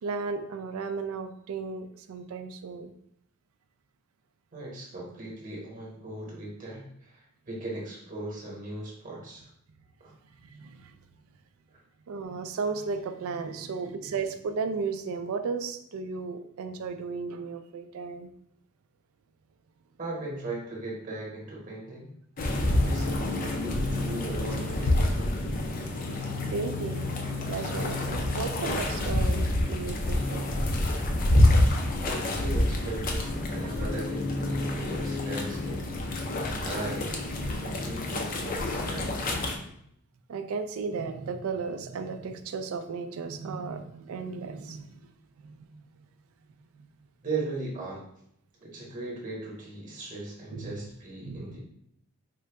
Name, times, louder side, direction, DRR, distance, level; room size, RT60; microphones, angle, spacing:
voice 1, 0.0-2.9 10.5-10.9 12.1-18.3 26.5-27.1 27.5-30.7 40.3-45.1 45.4-45.8 50.5-50.7 51.2-51.4, right 4 dB, 70° right, 8 dB, 0.3 m, -35 dB
voice 2, 4.5-9.5 10.0-10.1 11.7-11.8 20.0-22.1 22.8-25.5 32.0-35.8 36.6-39.3 47.2-48.0 48.6-51.6, right 2 dB, 35° right, -3 dB, 1.0 m, -38 dB
sound 1, 22.4-39.6, left 1 dB, 40° left, 0.4 m, -27 dB
3.8 x 2.2 x 3.3 m, 0.72 s
head